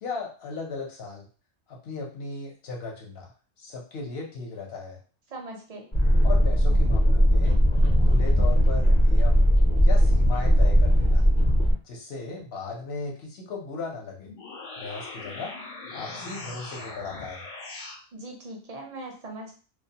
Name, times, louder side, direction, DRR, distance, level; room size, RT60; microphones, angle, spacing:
voice 1, 0.0-1.3 1.7-3.3 3.6-5.0 6.2-7.6 8.0-9.5 9.8-11.2 11.8-14.3 14.8-15.6 15.9-17.5, left 4 dB, 60° left, -1 dB, 0.9 m, -36 dB
voice 2, 5.3-5.9 18.1-19.6, right 2 dB, 50° right, 0 dB, 0.4 m, -40 dB
sound 1, 5.9-11.7, equal, 30° left, 0.6 m, -19 dB
sound 2, 14.2-18.0, left 3 dB, 90° left, 0.9 m, -40 dB
2.3 x 2.2 x 2.7 m, 0.39 s
omnidirectional pair, 1.2 m